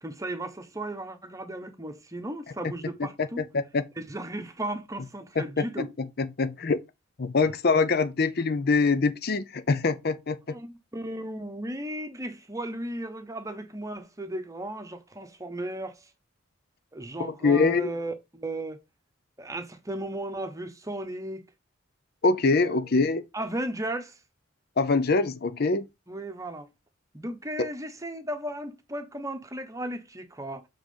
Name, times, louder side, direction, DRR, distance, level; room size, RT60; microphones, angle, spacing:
voice 1, 0.0-3.4 4.0-5.9 10.5-16.1 16.9-18.8 19.4-21.4 22.5-22.8 23.3-24.2 26.1-26.7 27.1-30.7, right 1 dB, 15° right, 1.0 m, -35 dB
voice 2, 3.0-3.8 5.4-6.8 7.2-10.4 17.2-17.9 22.2-23.2 24.8-25.8 27.6-27.7, left 4 dB, 50° left, 0.6 m, -24 dB
7.2 x 3.8 x 5.4 m
head